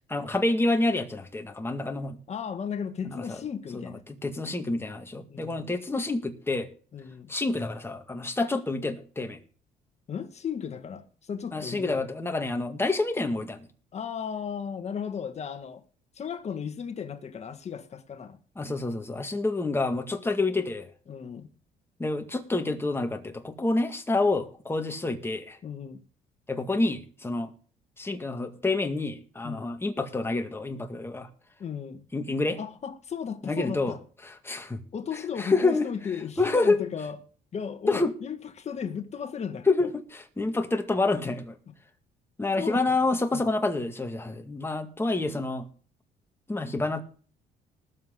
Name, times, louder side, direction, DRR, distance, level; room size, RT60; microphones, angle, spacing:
voice 1, 0.1-2.2 3.1-3.2 3.7-3.9 4.2-6.7 7.3-9.4 11.5-13.7 18.6-20.9 22.0-25.6 26.5-27.5 28.0-31.3 32.1-32.6 33.4-33.9 34.4-34.8 35.4-35.9 36.4-36.8 37.9-38.1 39.7-41.5 42.4-45.7 46.5-47.0, left 2 dB, 15° left, 2.0 m, -28 dB
voice 2, 2.3-4.0 5.3-5.7 6.9-7.3 10.1-12.0 13.9-15.8 16.2-18.4 21.1-21.5 25.6-26.0 29.4-29.7 30.9-31.0 31.6-32.0 32.6-34.0 34.9-37.2 37.5-39.9 42.6-43.0 43.3-43.4, left 7 dB, 40° left, 1.7 m, -35 dB
20.0 x 7.7 x 3.9 m
cardioid pair, 110°, 17 cm